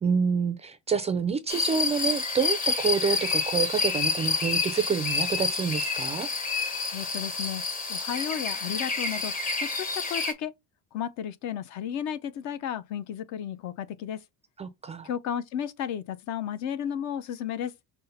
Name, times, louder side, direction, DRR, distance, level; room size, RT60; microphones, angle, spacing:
voice 1, 0.0-6.3 14.6-15.1, right 5 dB, 20° right, 0.3 m, -28 dB
sound 1, 1.5-10.3, left 4 dB, 25° left, 0.8 m, -28 dB
voice 2, 6.9-7.6 7.9-9.3 9.6-10.5 10.9-14.2 15.0-17.7, left 9 dB, 55° left, 0.5 m, -33 dB
5.4 x 2.1 x 4.0 m
cardioid pair, 155°, 35 cm